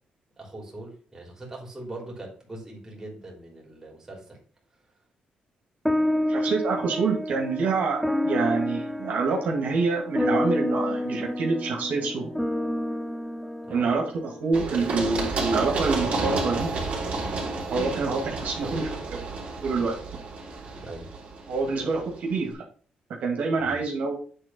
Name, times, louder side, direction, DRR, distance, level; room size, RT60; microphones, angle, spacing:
voice 1, 0.4-4.4 13.6-13.9 20.8-21.1 23.6-23.8, right 2 dB, 15° right, -2 dB, 3.4 m, -41 dB
sound 1, 5.8-14.5, left 1 dB, ahead, 0.6 m, -29 dB
voice 2, 6.3-12.3 13.7-16.7 17.7-19.2 19.6-20.0 21.5-22.5 23.2-24.2, right 4 dB, 70° right, 0 dB, 2.3 m, -26 dB
Run, 14.5-22.2, right 3 dB, 50° right, 3.4 m, -31 dB
8.8 x 3.8 x 5.6 m, 0.43 s
cardioid pair, 110°, 3 cm